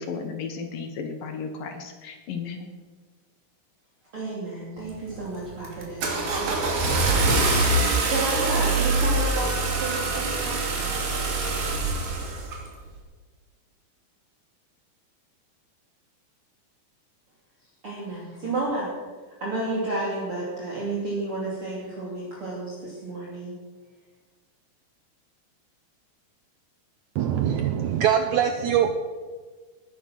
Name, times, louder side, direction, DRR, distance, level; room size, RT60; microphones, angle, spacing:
voice 1, 0.0-2.6, left 5 dB, 70° left, 5 dB, 2.9 m, -34 dB
voice 2, 4.1-7.1 7.7-11.1 17.8-18.9 19.4-23.5, right 2 dB, 35° right, -6 dB, 3.5 m, -32 dB
Car / Engine starting, 4.9-5.2 5.7-12.6, right 2 dB, 70° right, 4.3 m, -24 dB
voice 3, 27.1-28.9, right 9 dB, 90° right, 7 dB, 1.7 m, -23 dB
19.5 x 10.0 x 6.0 m, 1.4 s
omnidirectional pair, 4.4 m